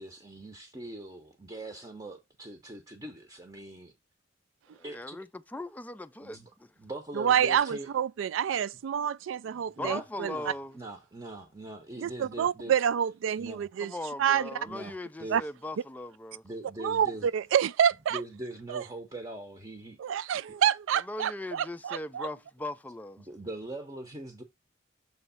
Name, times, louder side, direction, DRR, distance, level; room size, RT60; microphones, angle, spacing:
voice 1, 0.0-3.9 4.8-5.2 6.2-6.5 6.8-7.9 9.8-10.0 10.3-12.7 13.4-13.7 14.6-15.5 16.4-17.3 18.1-20.3 23.2-24.4, right 1 dB, 20° right, 0.8 m, -42 dB
voice 2, 4.7-5.3 5.5-6.7 9.5-10.8 13.8-16.4 21.1-23.3, left 2 dB, 10° left, 0.3 m, -39 dB
voice 3, 7.1-10.5 12.0-13.9 14.2-14.5 15.3-15.4 16.8-18.2 18.7-18.8 20.0-22.3, right 9 dB, 80° right, 0.3 m, -28 dB
7.0 x 3.1 x 5.6 m
head